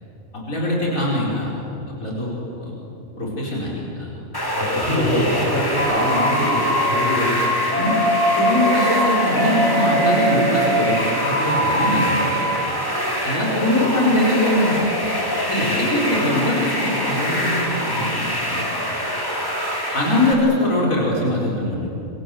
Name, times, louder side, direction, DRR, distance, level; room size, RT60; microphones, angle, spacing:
voice 1, 0.3-1.5 1.9-2.7 3.2-4.1 7.8-7.9 8.3-12.4 13.2-15.1 15.5-18.6 19.9-21.9, left 1 dB, 80° left, -4 dB, 5.1 m, -22 dB
sound 1, 4.3-20.3, equal, 15° left, 3.5 m, -25 dB
voice 2, 4.5-7.3, equal, 40° left, -3 dB, 7.8 m, -23 dB
sound 2, 5.7-12.6, equal, 60° left, 7.5 m, -22 dB
27.5 x 25.0 x 7.8 m, 2.9 s
omnidirectional pair, 1.4 m